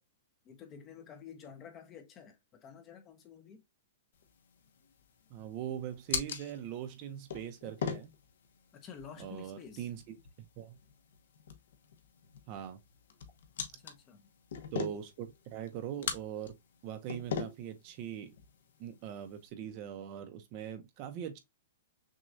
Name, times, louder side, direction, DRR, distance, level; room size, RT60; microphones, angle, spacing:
voice 1, 0.4-3.6 8.7-9.9 13.7-14.3, left 7 dB, 20° left, 0.6 m, -50 dB
sound 1, 4.1-19.5, left 7 dB, 65° left, 0.9 m, -43 dB
voice 2, 5.3-8.1 9.2-10.2 10.6-10.8 12.5-12.8 14.7-16.6 16.8-18.3 18.8-21.4, right 10 dB, 30° right, 0.6 m, -41 dB
6.2 x 2.3 x 2.6 m
hypercardioid pair, 170°, 0 cm